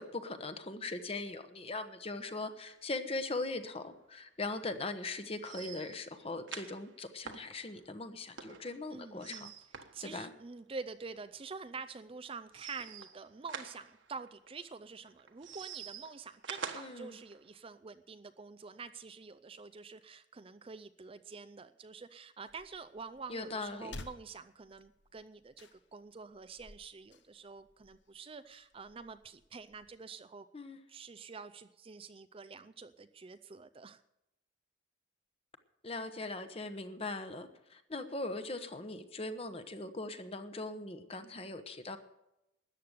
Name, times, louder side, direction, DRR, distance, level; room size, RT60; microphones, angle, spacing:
voice 1, 0.0-9.5 10.0-10.3 16.7-17.2 23.3-24.0 30.5-30.8 35.8-42.0, left 2 dB, 30° left, 9 dB, 1.0 m, -40 dB
sound 1, 2.2-2.8 3.1-3.2 3.5-3.6 4.0-4.1 5.4-10.7 11.0-11.2 12.5-14.5 15.1-17.4, right 6 dB, 70° right, 1.4 m, -47 dB
voice 2, 8.9-9.5 9.9-30.5 30.9-34.0, right 4 dB, 30° right, 12 dB, 0.4 m, -47 dB
sound 2, 22.5-29.9, left 2 dB, 60° left, 1.1 m, -55 dB
13.5 x 9.5 x 6.8 m, 0.87 s
head